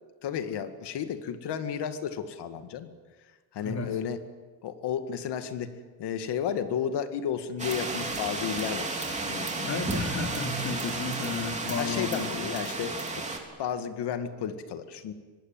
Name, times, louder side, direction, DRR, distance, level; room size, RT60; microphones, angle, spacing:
voice 1, 0.2-2.9 3.5-4.2 4.6-5.7 6.0-9.0 9.2-9.6 11.8-13.3 13.6-15.1, left 8 dB, 60° left, 9 dB, 2.1 m, -32 dB
voice 2, 3.6-4.0 9.6-12.6, left 4 dB, 35° left, 3 dB, 3.7 m, -33 dB
sound 1, 7.6-13.4, right 3 dB, 15° right, 3.5 m, -33 dB
24.0 x 20.0 x 9.1 m, 1.4 s
cardioid pair, 145°, 45 cm